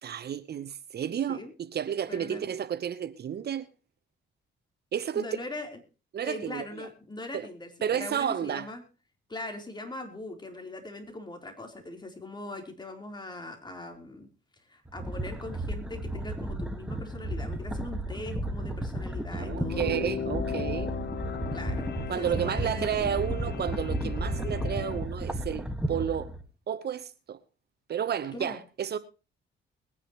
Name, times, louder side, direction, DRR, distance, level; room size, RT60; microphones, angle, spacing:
voice 1, 0.0-3.7 4.9-5.2 6.1-6.9 7.3-7.5 7.8-8.7 19.3-20.9 22.1-26.3 26.7-27.4 27.9-29.0, right 9 dB, 55° right, 0.9 m, -31 dB
voice 2, 2.1-2.5 5.2-5.7 6.2-8.8 9.3-14.3 14.7-20.0 21.5-23.1 28.3-28.6, left 2 dB, 20° left, 3.8 m, -41 dB
sound 1, 14.9-26.4, right 1 dB, 5° right, 1.6 m, -33 dB
sound 2, 19.4-25.1, left 8 dB, 55° left, 0.8 m, -38 dB
21.5 x 10.0 x 3.0 m
cardioid pair, 90°, 20 cm